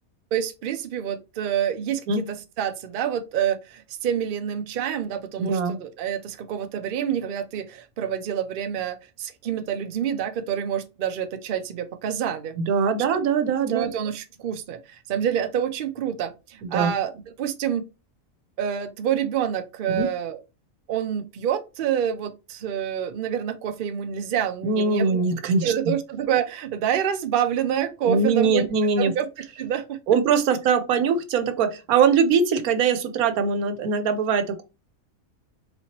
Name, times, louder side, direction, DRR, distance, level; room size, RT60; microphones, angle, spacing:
voice 1, 0.3-12.5 13.7-17.8 18.6-20.4 20.9-25.2 25.6-28.7 29.0-29.3 29.6-30.0, right 9 dB, 70° right, 0.5 m, -27 dB
voice 2, 5.4-5.8 12.6-13.9 16.7-16.9 19.9-20.1 24.6-25.7 28.1-29.1 30.1-34.6, right 5 dB, 85° right, 1.1 m, -22 dB
4.1 x 2.8 x 2.9 m
omnidirectional pair, 1.5 m